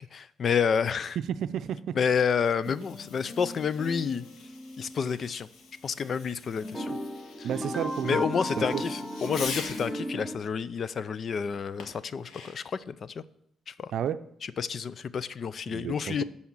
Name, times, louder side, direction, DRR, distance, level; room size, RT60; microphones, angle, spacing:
voice 1, 0.1-1.2 1.9-4.2 4.8-5.5 5.8-7.0 7.4-7.5 8.0-13.2 13.7-13.9 14.4-16.2, left 6 dB, 50° left, 17 dB, 0.5 m, -29 dB
voice 2, 1.2-1.9 7.4-8.2 8.6-8.8 13.9-14.2 15.7-16.2, right 9 dB, 70° right, 12 dB, 0.5 m, -31 dB
Fireworks, 2.3-10.0 11.8-12.8, left 4 dB, 75° left, 1.5 m, -44 dB
sound 1, 2.7-5.1 6.6-10.4, equal, 5° left, 1.7 m, -36 dB
12.5 x 4.2 x 7.3 m, 0.73 s
cardioid pair, 90°, 0 cm